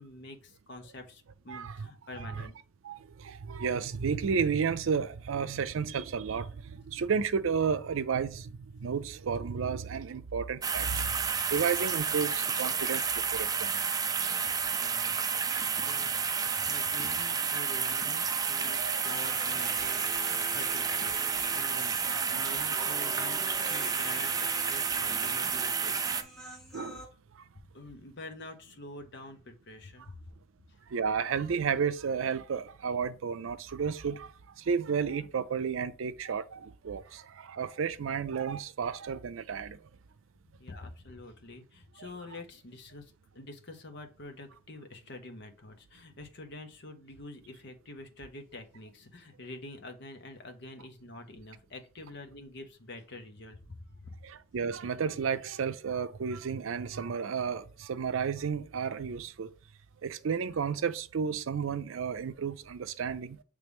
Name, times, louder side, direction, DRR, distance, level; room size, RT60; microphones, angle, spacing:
voice 1, 0.0-2.5 14.7-15.2 15.8-26.2 27.7-30.2 30.7-30.8 37.1-37.2 40.6-54.1, left 2 dB, 60° left, 1.0 m, -47 dB
voice 2, 1.5-1.9 2.2-2.5 2.8-11.2 11.5-13.8 15.5-15.6 18.7-19.0 19.3-19.4 22.3-22.9 26.7-27.0 27.4-27.5 30.9-39.8 42.0-42.1 54.2-59.5 60.0-63.4, right 6 dB, 90° right, 0.5 m, -32 dB
sound 1, 10.6-26.2, right 6 dB, 20° right, 0.4 m, -30 dB
Human voice, 19.0-27.0, right 1 dB, ahead, 1.8 m, -45 dB
8.0 x 3.3 x 3.5 m
head